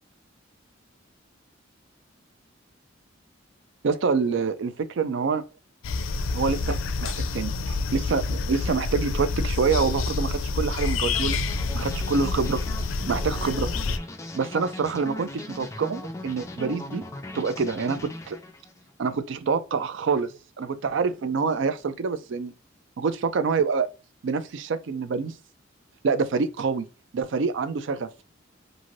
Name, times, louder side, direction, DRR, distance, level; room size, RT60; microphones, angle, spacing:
voice 1, 3.8-5.4 6.3-11.4 11.7-12.6 13.1-13.7 14.3-17.0 17.3-18.4 19.0-22.5 23.0-23.9 24.2-25.3 26.0-26.8 27.1-28.2, right 5 dB, 65° right, 0.4 m, -26 dB
sound 1, 5.8-14.0, left 4 dB, 85° left, 0.4 m, -28 dB
sound 2, 11.1-18.8, left 2 dB, 15° left, 0.4 m, -39 dB
2.6 x 2.5 x 3.0 m
head